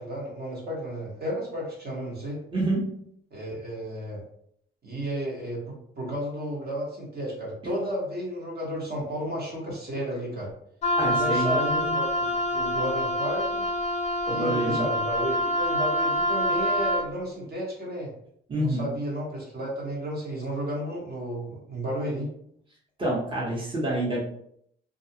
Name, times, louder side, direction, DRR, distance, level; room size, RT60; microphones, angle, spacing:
voice 1, 0.0-2.4 3.3-4.2 4.8-10.5 11.1-13.6 14.3-18.1 18.6-22.3, equal, 50° right, -3 dB, 1.2 m, -33 dB
voice 2, 2.5-2.8 10.9-12.0 14.3-14.8 18.5-18.9 23.0-24.2, right 1 dB, 25° right, -6 dB, 0.9 m, -27 dB
Wind instrument woodwind instrument, 10.8-17.1, equal, 35° left, 0.4 m, -26 dB
2.5 x 2.3 x 2.8 m, 0.69 s
cardioid pair, 90°, 20 cm